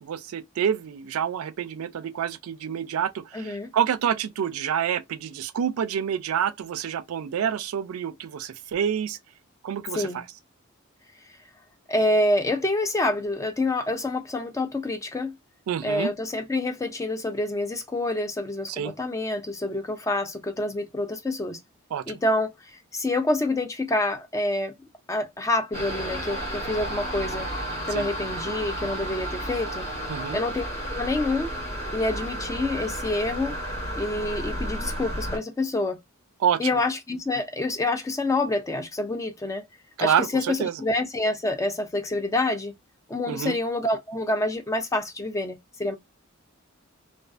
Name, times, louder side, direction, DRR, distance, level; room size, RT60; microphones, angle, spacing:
voice 1, 0.0-9.2 9.6-10.2 15.7-16.1 18.7-18.9 21.9-22.0 27.9-28.1 30.1-30.4 36.4-36.8 40.0-40.7 43.3-43.6, right 8 dB, 90° right, 0.3 m, -27 dB
voice 2, 3.3-3.7 9.9-10.2 11.9-15.3 15.8-21.6 22.1-22.5 22.9-24.7 25.1-27.5 27.9-29.8 30.3-30.6 30.9-31.5 31.9-33.5 34.0-36.0 36.6-39.6 40.0-42.7 43.1-45.9, left 2 dB, 15° left, 0.4 m, -27 dB
sound 1, 25.7-35.4, equal, 35° left, 1.2 m, -32 dB
2.4 x 2.3 x 2.3 m
head